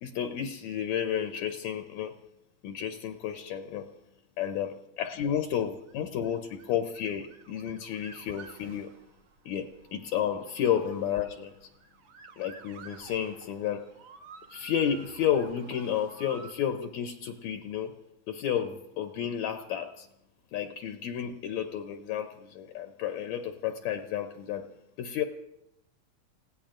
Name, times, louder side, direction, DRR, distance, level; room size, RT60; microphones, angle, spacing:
voice 1, 0.0-2.1 2.6-3.9 4.4-8.9 9.5-11.6 12.4-13.9 14.5-17.9 18.3-20.1 20.5-24.6 25.0-25.2, left 9 dB, 75° left, 6 dB, 2.0 m, -31 dB
Motor vehicle (road) / Siren, 5.4-16.5, right 5 dB, 60° right, 1.4 m, -52 dB
29.5 x 17.0 x 2.5 m, 0.84 s
omnidirectional pair, 3.4 m